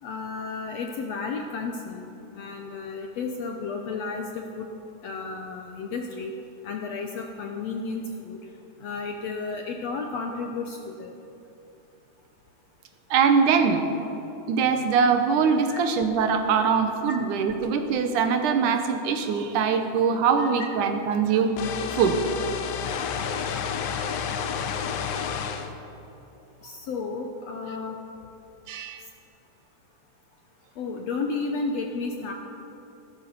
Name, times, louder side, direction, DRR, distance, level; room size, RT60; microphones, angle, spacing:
voice 1, 0.0-4.7 5.0-6.3 6.6-8.4 8.8-11.1 15.7-15.8 17.1-17.2 20.4-20.5 26.6-28.0 30.8-32.3, left 4 dB, 70° left, 3 dB, 1.7 m, -32 dB
voice 2, 13.1-13.9 14.5-21.5 22.0-22.2 23.9-24.1 28.7-29.0, right 6 dB, 70° right, 6 dB, 2.3 m, -22 dB
sound 1, 21.6-25.7, left 7 dB, 90° left, 2.7 m, -30 dB
15.5 x 12.0 x 6.9 m, 3.0 s
omnidirectional pair, 3.9 m